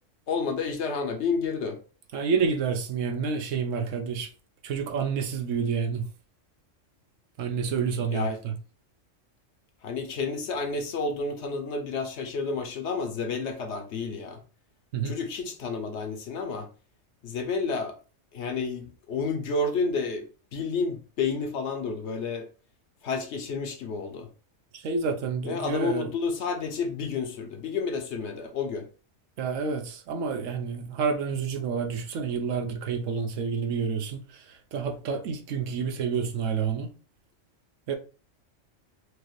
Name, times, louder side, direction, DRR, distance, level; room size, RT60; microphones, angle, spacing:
voice 1, 0.3-1.8 8.1-8.4 9.8-14.4 15.0-16.7 17.2-18.0 18.3-22.5 23.0-24.3 25.4-28.9, left 4 dB, 65° left, 1.0 m, -30 dB
voice 2, 2.1-4.3 4.6-6.1 7.4-8.5 14.9-15.1 24.7-26.1 29.4-36.9 37.9-38.0, right 5 dB, 80° right, 1.1 m, -29 dB
4.8 x 2.6 x 3.1 m
omnidirectional pair, 1.3 m